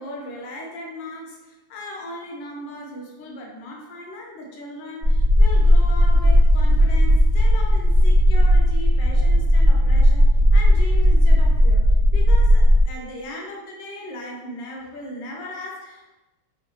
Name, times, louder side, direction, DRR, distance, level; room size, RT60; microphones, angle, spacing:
voice 1, 0.0-10.2 10.5-11.8 12.1-16.2, left 1 dB, 70° left, -1 dB, 1.2 m, -37 dB
sound 1, 5.0-12.8, equal, 65° right, 0.6 m, -15 dB
3.5 x 2.1 x 3.0 m, 1.1 s
omnidirectional pair, 2.3 m